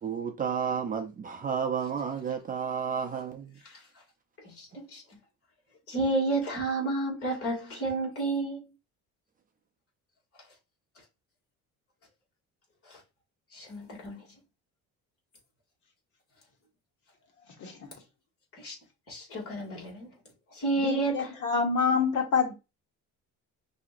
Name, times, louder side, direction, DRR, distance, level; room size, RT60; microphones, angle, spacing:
voice 1, 0.0-3.6, right 7 dB, 25° right, 0.6 m, -31 dB
voice 2, 4.4-5.0 5.9-8.6 13.5-14.2 18.6-18.7 19.1-20.1 20.5-21.3, right 2 dB, 45° left, 2.3 m, -30 dB
voice 3, 20.8-22.5, left 5 dB, 60° left, 1.4 m, -26 dB
5.7 x 2.8 x 2.5 m
cardioid pair, 145°, 33 cm